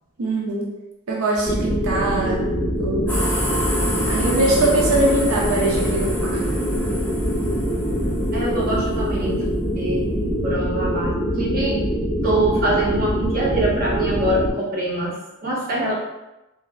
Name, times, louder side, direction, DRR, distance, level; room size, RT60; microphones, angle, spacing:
voice 1, 0.2-0.7 1.1-2.5 2.8-3.2 4.1-6.4, right 2 dB, 90° right, -2 dB, 0.4 m, -22 dB
sound 1, 1.4-14.5, equal, 5° right, 1.4 m, -24 dB
sound 2, 3.1-9.9, equal, 10° left, 0.4 m, -28 dB
voice 2, 8.3-9.4 9.7-11.8 12.2-15.9, right 1 dB, 45° right, -5 dB, 0.8 m, -24 dB
3.1 x 2.0 x 2.2 m, 0.98 s
head